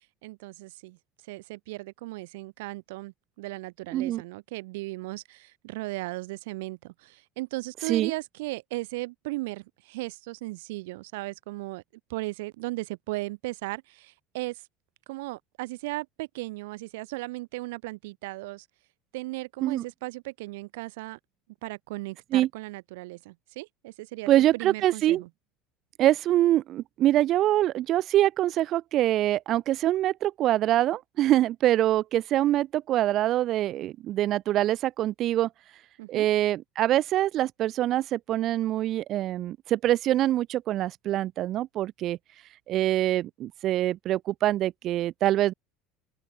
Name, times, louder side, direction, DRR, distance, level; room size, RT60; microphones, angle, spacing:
voice 1, 0.2-1.0 1.3-11.8 12.1-14.6 15.1-18.7 19.1-21.2 21.6-25.3 36.0-36.3, right 22 dB, 75° right, 5.4 m, -36 dB
voice 2, 3.9-4.2 7.9-8.1 19.6-19.8 22.3-22.5 24.3-25.2 26.0-35.5 36.1-42.2 42.7-45.5, right 13 dB, 50° right, 1.6 m, -24 dB
hypercardioid pair, 75°, 0 cm